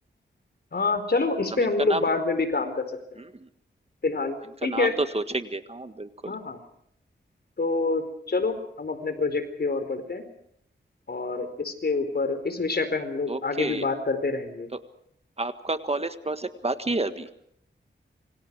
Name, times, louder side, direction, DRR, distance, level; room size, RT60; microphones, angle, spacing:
voice 1, 0.7-3.2 4.0-4.9 6.3-6.6 7.6-10.3 11.1-14.7, left 3 dB, 60° left, 9 dB, 4.5 m, -27 dB
voice 2, 1.5-2.1 3.2-3.5 4.6-6.3 13.3-13.9 14.7-14.8 15.4-17.3, right 2 dB, 35° right, 10 dB, 1.6 m, -30 dB
27.0 x 24.5 x 4.8 m, 0.70 s
wide cardioid pair, 80°, 19 cm